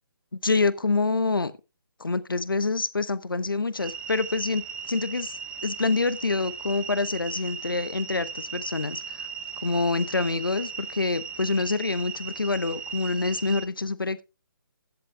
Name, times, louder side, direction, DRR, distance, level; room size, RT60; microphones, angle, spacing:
voice 1, 0.3-1.5 2.0-9.3 9.6-14.2, left 3 dB, 75° left, 1.2 m, -26 dB
sound 1, 3.8-13.7, right 7 dB, 10° right, 0.8 m, -37 dB
16.0 x 11.0 x 2.2 m
figure-of-eight pair, 145°, 11 cm